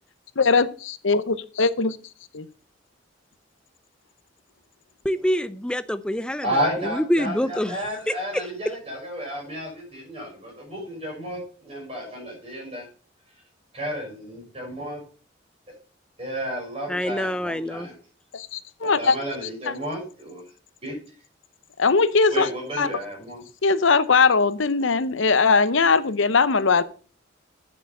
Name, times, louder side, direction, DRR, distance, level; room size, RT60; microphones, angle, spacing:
voice 1, 0.4-2.0 2.3-2.5 18.3-19.2 21.8-22.5 22.8-22.9 23.6-26.8, left 4 dB, 80° left, 14 dB, 0.8 m, -20 dB
voice 2, 5.0-6.5 6.8-7.8 8.1-8.4 16.9-17.9, equal, 5° left, 13 dB, 0.5 m, -26 dB
voice 3, 6.4-12.9 13.7-15.0 16.2-18.0 18.8-20.4 20.8-21.0 22.3-23.4, equal, 30° right, -1 dB, 5.8 m, -32 dB
9.3 x 7.0 x 5.4 m, 0.38 s
head